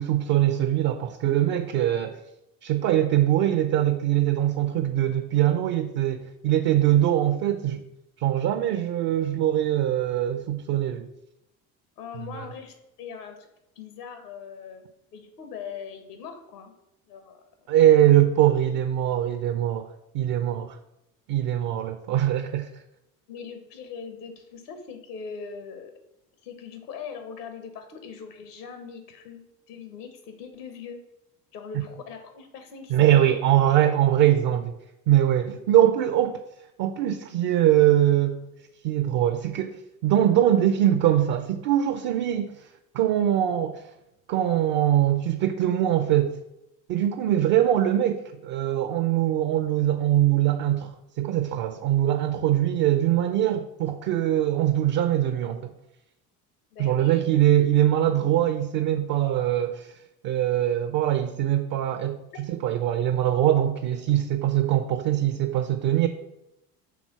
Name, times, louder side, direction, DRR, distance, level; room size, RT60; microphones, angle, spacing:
voice 1, 0.0-2.2 2.6-7.8 8.2-11.1 12.4-12.5 17.7-19.9 20.1-20.8 21.3-22.7 32.9-34.7 35.1-36.4 36.8-38.4 38.8-39.8 40.0-42.6 42.9-43.8 44.3-46.4 46.9-55.7 56.8-59.9 60.2-66.1, right 12 dB, 45° right, 6 dB, 0.7 m, -22 dB
voice 2, 12.0-13.5 13.7-14.8 15.1-16.7 17.1-17.4 20.5-20.6 23.3-25.9 26.4-31.0 31.5-33.4 56.7-57.2, left 6 dB, 70° left, 7 dB, 1.4 m, -41 dB
6.1 x 3.8 x 6.0 m, 0.87 s
figure-of-eight pair, 65°, 48 cm